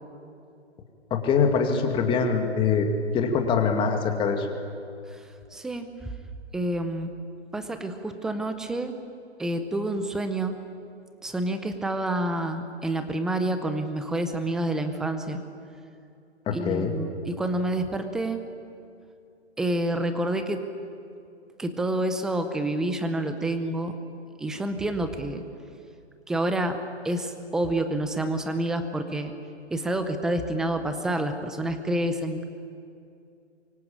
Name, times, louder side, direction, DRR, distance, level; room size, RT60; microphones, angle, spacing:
voice 1, 1.1-2.9 3.1-4.5 16.5-16.9, left 6 dB, 15° left, 4 dB, 2.4 m, -23 dB
voice 2, 5.5-5.9 6.5-7.1 7.5-8.9 9.4-10.5 11.2-15.4 16.5-18.4 19.6-20.6 21.6-24.0 24.4-25.4 26.3-26.8 27.0-29.3 29.7-32.4, right 1 dB, ahead, 8 dB, 0.6 m, -28 dB
27.5 x 24.5 x 8.7 m, 2.5 s
hypercardioid pair, 150°, 35 cm